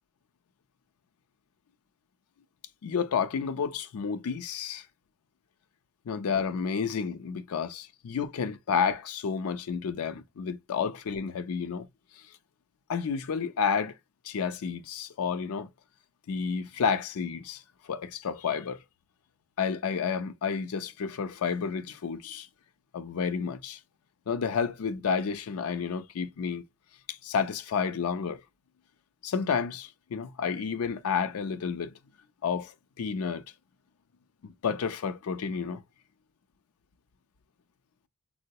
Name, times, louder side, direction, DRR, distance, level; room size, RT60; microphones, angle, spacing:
voice 1, 2.8-4.9 6.1-11.9 12.2-12.3 12.9-14.0 14.2-15.7 16.3-18.8 19.6-22.5 22.9-23.8 24.3-26.6 27.1-28.4 29.2-32.0 32.4-33.4 34.4-35.8, left 6 dB, 80° left, 0.4 m, -31 dB
3.6 x 2.0 x 2.6 m
head